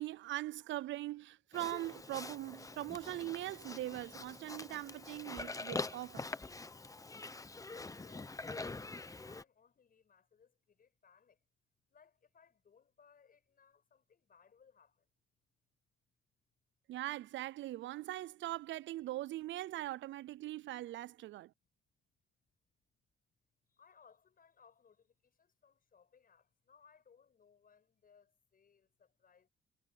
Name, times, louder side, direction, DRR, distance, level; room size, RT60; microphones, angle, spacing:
voice 1, 0.0-6.2 16.9-21.5, right 15 dB, 70° right, 0.4 m, -41 dB
Livestock farm animals working animals, 1.5-9.4, left 3 dB, 15° left, 1.0 m, -45 dB
voice 2, 7.8-11.4 11.9-15.1 23.7-29.5, left 6 dB, 45° left, 7.9 m, -66 dB
cardioid pair, 90°, 20 cm